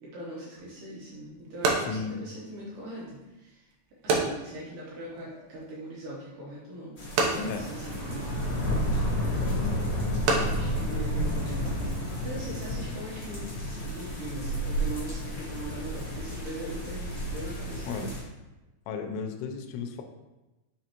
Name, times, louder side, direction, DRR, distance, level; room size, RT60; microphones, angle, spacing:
voice 1, 0.0-3.7 4.0-9.1 10.4-18.1, right 1 dB, 70° right, -6 dB, 2.0 m, -41 dB
sound 1, 0.6-11.9, right 3 dB, 90° right, 1.9 m, -33 dB
voice 2, 1.8-2.2 7.4-7.7 17.9-18.2 18.9-20.0, left 5 dB, 80° left, 4 dB, 2.7 m, -34 dB
sound 2, 7.0-18.2, equal, 50° left, 1.1 m, -31 dB
sound 3, 7.5-13.0, right 1 dB, 50° right, 1.4 m, -47 dB
5.9 x 5.8 x 2.9 m, 1.1 s
omnidirectional pair, 5.0 m